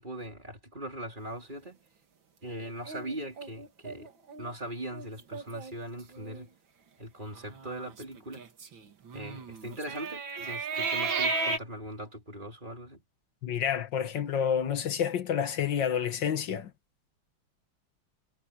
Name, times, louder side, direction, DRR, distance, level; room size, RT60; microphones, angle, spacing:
voice 1, 0.0-1.8 2.4-4.1 4.4-6.5 7.0-8.4 9.1-13.0, right 1 dB, 25° right, 4.4 m, -40 dB
sound 1, 2.8-4.5 4.9-5.1 5.3-5.7 6.1-6.4 7.3-11.6, right 4 dB, 75° right, 2.8 m, -34 dB
voice 2, 13.4-16.7, left 8 dB, 70° left, 2.0 m, -29 dB
omnidirectional pair, 2.1 m